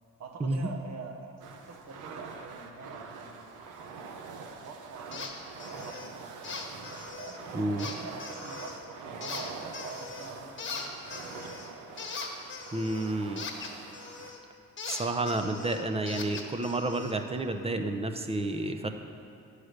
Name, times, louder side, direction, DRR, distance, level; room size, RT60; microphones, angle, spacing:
voice 1, 0.2-3.5 4.4-6.4 6.9-11.8, right 4 dB, 60° right, 3 dB, 1.1 m, -45 dB
sound 1, 1.4-14.3, right 4 dB, 90° right, 0.8 m, -45 dB
sound 2, 5.1-5.3 5.6-6.1 6.4-7.4 7.8-8.8 9.2-10.3 10.6-14.4 14.8-17.2, left 4 dB, 40° left, 1.2 m, -40 dB
voice 2, 7.5-7.9 12.7-13.4 14.9-18.9, right 2 dB, 20° right, 6 dB, 0.6 m, -30 dB
9.7 x 4.9 x 6.5 m, 2.6 s
cardioid pair, 90°, 30 cm